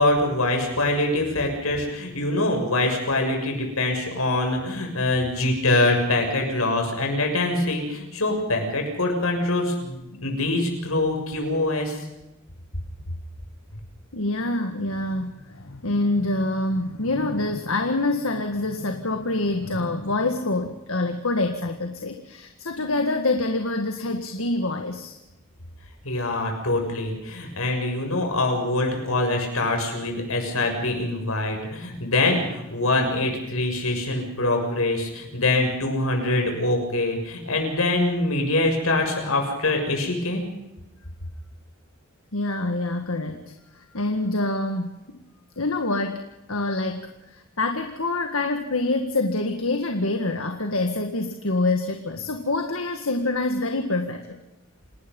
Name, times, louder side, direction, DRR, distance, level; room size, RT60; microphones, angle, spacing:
voice 1, 0.0-12.0 26.0-40.4, left 2 dB, 90° left, 3 dB, 6.8 m, -24 dB
voice 2, 14.1-25.1 42.3-43.4 43.8-45.0 45.6-54.4, left 2 dB, 75° left, 5 dB, 1.9 m, -26 dB
29.0 x 19.0 x 5.5 m, 0.95 s
head